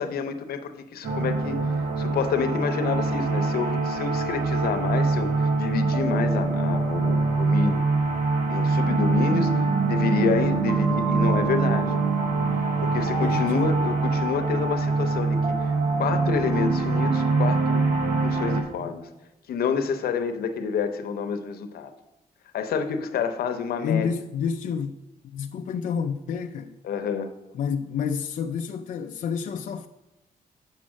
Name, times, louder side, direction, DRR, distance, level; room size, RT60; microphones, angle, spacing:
voice 1, 0.0-7.8 8.5-9.6 9.9-11.9 12.8-17.9 18.2-19.0 19.5-21.9 22.5-24.1 26.8-27.3, left 6 dB, 85° left, 0.7 m, -28 dB
sound 1, 1.0-18.6, right 3 dB, 75° right, 1.1 m, -24 dB
voice 2, 13.2-13.7 23.8-25.0 25.2-26.7 27.5-29.9, left 7 dB, 55° left, 0.4 m, -29 dB
7.2 x 5.3 x 6.2 m
cardioid pair, 130°, 15 cm